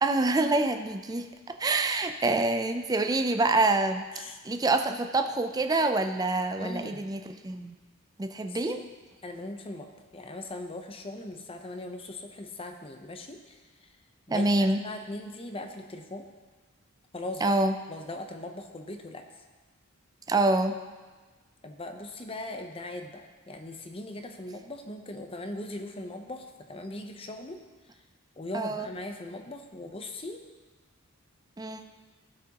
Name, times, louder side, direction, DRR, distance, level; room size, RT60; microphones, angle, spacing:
voice 1, 0.0-7.8 8.2-8.8 14.3-14.8 17.4-17.7 20.3-20.8 28.5-28.9 31.6-31.8, right 2 dB, 20° right, 7 dB, 0.4 m, -26 dB
voice 2, 6.6-7.1 8.4-8.9 9.2-13.9 14.3-16.3 17.1-17.4 17.9-19.2 21.6-27.6 28.4-30.4, left 1 dB, 25° left, 5 dB, 0.7 m, -40 dB
16.0 x 6.1 x 2.9 m, 1.3 s
head